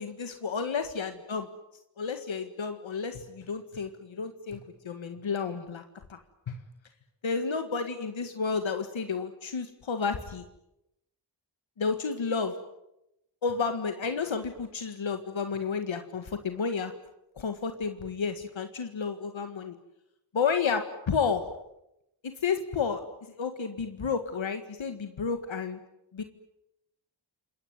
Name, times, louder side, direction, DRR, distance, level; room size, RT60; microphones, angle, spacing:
voice 1, 0.0-1.5 2.0-5.8 6.1-6.2 6.5-6.6 7.2-10.4 11.8-12.5 13.4-16.9 17.4-19.8 20.3-21.5 22.2-23.0 23.3-25.8 26.1-26.2, left 5 dB, 85° left, 7 dB, 1.9 m, -31 dB
27.5 x 21.5 x 9.5 m, 0.87 s
cardioid pair, 45°, 45 cm